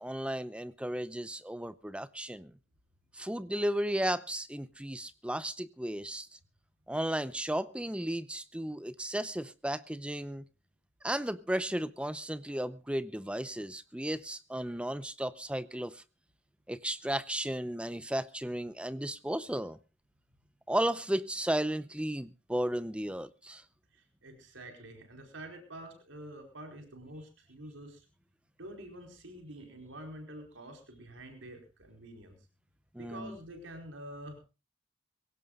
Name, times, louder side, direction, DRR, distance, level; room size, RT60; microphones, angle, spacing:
voice 1, 0.0-2.5 3.1-6.3 6.9-10.4 11.0-16.0 16.7-19.8 20.7-23.6 32.9-33.4, right 1 dB, 5° right, 0.6 m, -34 dB
voice 2, 23.9-28.1 28.6-32.4 33.0-34.4, right 1 dB, 75° right, 4.6 m, -47 dB
23.5 x 17.0 x 2.4 m
head